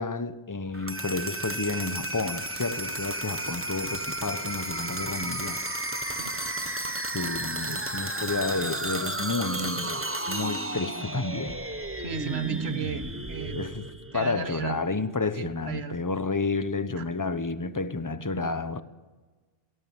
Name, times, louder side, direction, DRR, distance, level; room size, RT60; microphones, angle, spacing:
voice 1, 0.0-5.6 7.1-11.6 13.5-13.8 14.1-18.8, left 3 dB, 20° left, 0.9 m, -30 dB
sound 1, 0.7-14.6, right 1 dB, 10° right, 1.1 m, -33 dB
sound 2, 6.1-10.2, right 3 dB, 30° right, 1.2 m, -46 dB
voice 2, 12.0-13.6 14.1-14.8 15.3-16.0 17.0-17.1, right 6 dB, 65° right, 1.8 m, -34 dB
21.0 x 18.0 x 9.0 m
omnidirectional pair, 1.1 m